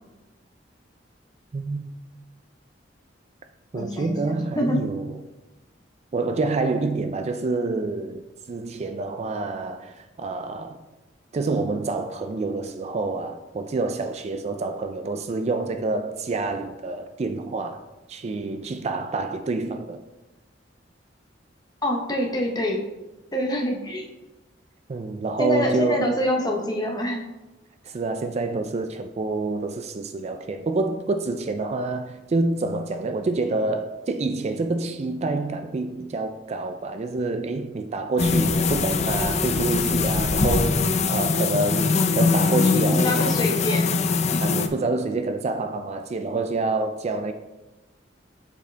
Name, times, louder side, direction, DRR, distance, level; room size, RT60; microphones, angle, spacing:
voice 1, 1.5-1.9 3.7-5.2 6.1-10.8 11.3-17.8 18.1-20.0 24.9-26.2 27.8-43.1 44.4-47.3, right 3 dB, 35° right, 0.4 m, -27 dB
voice 2, 3.7-4.8 21.8-22.8 23.3-24.0 25.4-27.2 42.7-43.9 44.3-44.4, equal, 20° left, 1.0 m, -26 dB
sound 1, 38.2-44.7, left 4 dB, 40° left, 0.4 m, -22 dB
6.7 x 5.0 x 3.3 m
head